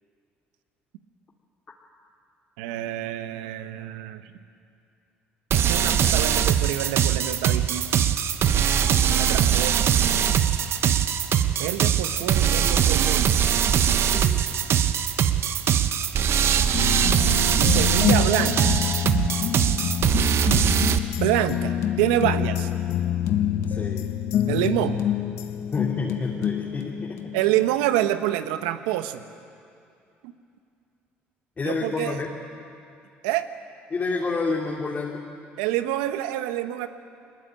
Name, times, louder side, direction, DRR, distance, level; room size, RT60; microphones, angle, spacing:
voice 1, 2.6-4.3 5.5-8.1 9.1-9.8 11.6-13.4 17.6-18.7 21.2-22.7 24.5-25.0 27.3-29.2 30.2-30.3 31.6-32.2 33.2-33.5 35.6-36.9, right 13 dB, 85° right, 11 dB, 1.1 m, -27 dB
sound 1, 5.5-21.0, right 9 dB, 55° right, 1.2 m, -21 dB
voice 2, 14.0-14.4 23.7-24.1 25.7-27.3 31.6-32.3 33.9-35.2, left 3 dB, 35° left, -2 dB, 2.9 m, -29 dB
sound 2, 16.7-27.8 28.1-28.2, left 10 dB, 65° left, 1.3 m, -27 dB
22.5 x 20.0 x 9.0 m, 2.5 s
supercardioid pair, 70°, 5 cm